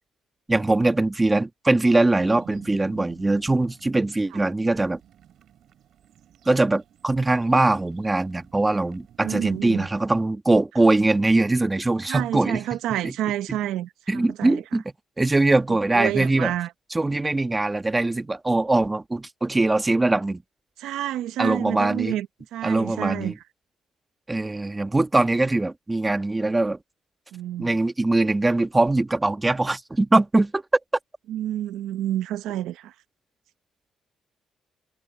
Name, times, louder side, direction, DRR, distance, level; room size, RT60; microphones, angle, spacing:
voice 1, 0.5-5.0 6.4-12.6 13.0-13.1 13.5-13.6 14.1-14.8 15.2-16.5 16.9-20.4 21.4-22.2 22.6-23.4 24.3-26.8 27.6-30.6, right 2 dB, 15° right, 1.6 m, -22 dB
sound 1, 2.2-10.3, right 10 dB, 70° right, 5.0 m, -51 dB
voice 2, 9.2-9.9 12.1-14.6 15.9-16.7 20.8-22.3 22.5-23.3 27.3-27.8 31.3-32.9, right 12 dB, 90° right, 0.7 m, -29 dB
cardioid pair, 90°, 0 cm